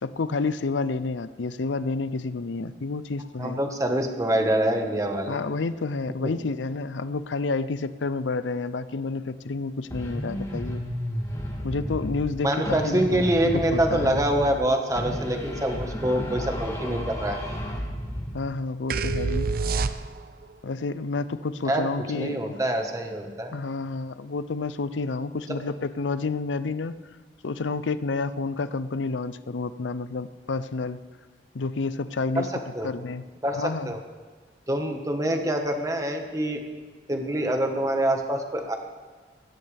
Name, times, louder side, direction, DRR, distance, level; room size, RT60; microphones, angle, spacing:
voice 1, 0.0-3.6 5.3-10.8 11.6-14.2 18.3-19.5 20.6-22.5 23.5-27.0 27.4-31.0 31.5-32.5 32.8-33.2 33.6-34.0, left 3 dB, 85° left, 14 dB, 0.5 m, -30 dB
voice 2, 3.4-5.4 6.2-6.3 12.4-17.4 21.6-21.9 22.1-23.5 32.3-32.5 32.7-32.9 33.4-34.0 34.7-36.6 37.1-38.8, right 1 dB, 20° right, 4 dB, 1.4 m, -25 dB
sound 1, 9.9-12.4 12.6-14.7 14.9-18.4, equal, 20° left, 2.6 m, -32 dB
sound 2, 18.9-20.4, right 4 dB, 50° right, 0.6 m, -26 dB
20.0 x 16.0 x 3.5 m, 1.5 s
head